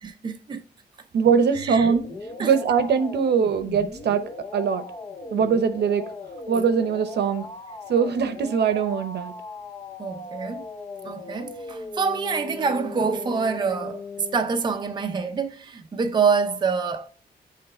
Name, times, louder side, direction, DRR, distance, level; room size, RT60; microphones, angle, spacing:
voice 1, 0.0-0.6 1.5-2.0 2.4-2.5 10.0-10.6 11.0-14.0 14.3-17.1, right 5 dB, 25° right, 0.5 m, -26 dB
voice 2, 1.1-2.1 2.4-4.9 5.3-6.1 6.5-7.5 7.9-9.3, right 6 dB, 75° right, 0.8 m, -22 dB
sound 1, 1.5-14.4, left 3 dB, 30° left, 0.6 m, -38 dB
8.0 x 3.2 x 4.2 m
wide cardioid pair, 165°, 17 cm